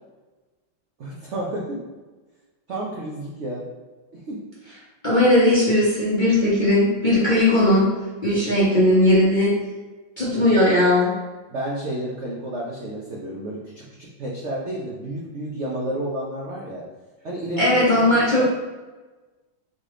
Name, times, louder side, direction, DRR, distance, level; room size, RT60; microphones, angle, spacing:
voice 1, 1.0-1.8 2.7-3.6 4.1-4.4 10.3-10.6 11.5-16.8 17.2-18.4, right 1 dB, 80° right, -4 dB, 0.6 m, -31 dB
voice 2, 5.0-7.9 8.2-9.5 10.2-11.1 17.6-18.4, left 1 dB, 40° left, -9 dB, 0.7 m, -18 dB
4.0 x 3.4 x 3.7 m, 1.2 s
omnidirectional pair, 2.2 m